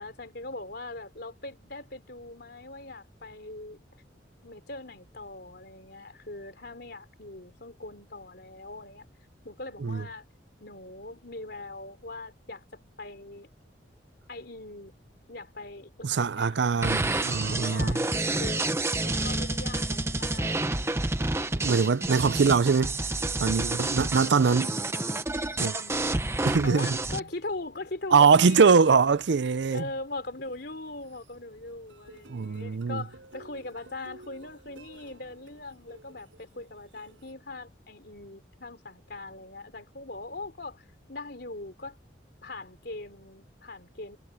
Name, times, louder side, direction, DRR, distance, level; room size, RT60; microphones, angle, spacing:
voice 1, 0.0-3.8 4.4-9.1 9.4-10.3 10.6-13.5 14.3-14.9 15.3-17.1 17.7-18.7 19.0-21.1 23.6-24.8 25.6-26.3 26.6-29.2 29.7-42.0 42.4-44.2, left 2 dB, 60° left, 3.7 m, -41 dB
voice 2, 16.0-18.1 21.5-23.0 23.4-24.7 25.6-25.7 26.5-27.0 28.1-29.8 32.3-33.0, right 5 dB, 70° right, 0.5 m, -22 dB
sound 1, 16.8-27.2, right 2 dB, 15° right, 0.9 m, -29 dB
sound 2, 29.5-31.3 31.7-37.3, right 1 dB, 90° right, 7.7 m, -53 dB
head